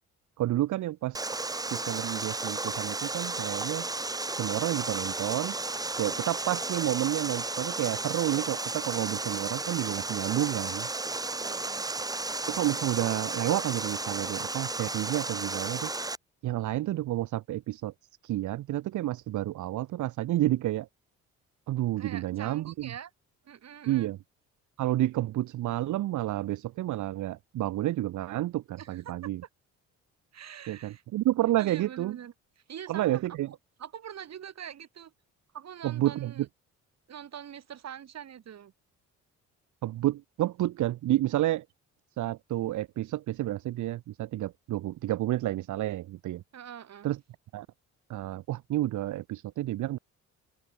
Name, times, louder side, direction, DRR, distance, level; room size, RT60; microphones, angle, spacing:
voice 1, 0.4-1.2 1.6-3.9 4.3-5.6 6.0-10.9 12.5-15.9 16.4-17.9 18.2-20.9 21.7-22.9 23.9-24.2 24.8-29.4 30.7-32.2 32.9-33.5 35.8-36.5 39.8-41.6 42.2-46.4 47.0-47.2 47.5-47.7 48.1-50.0, right 15 dB, 75° right, 1.1 m, -30 dB
Water, 1.1-16.2, right 2 dB, 10° right, 0.9 m, -33 dB
voice 2, 11.3-11.9 22.0-23.1 23.4-24.1 28.8-29.0 30.3-31.0 31.6-32.3 32.7-33.2 33.8-35.1 35.5-36.5 37.1-38.7 46.5-47.1, right 9 dB, 60° right, 5.5 m, -44 dB
open air
cardioid pair, 90°, 30 cm